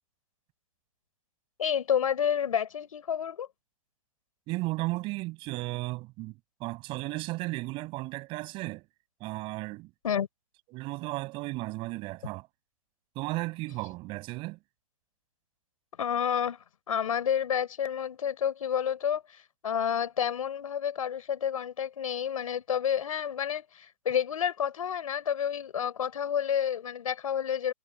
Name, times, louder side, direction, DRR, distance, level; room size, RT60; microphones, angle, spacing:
voice 1, 1.6-3.5 10.0-10.3 16.0-16.6 16.9-27.7, left 8 dB, 75° left, 4.2 m, -29 dB
voice 2, 4.5-8.8 9.2-9.9 10.7-12.5 13.1-14.6, right 21 dB, 30° right, 5.9 m, -35 dB
hypercardioid pair, 150°, 18 cm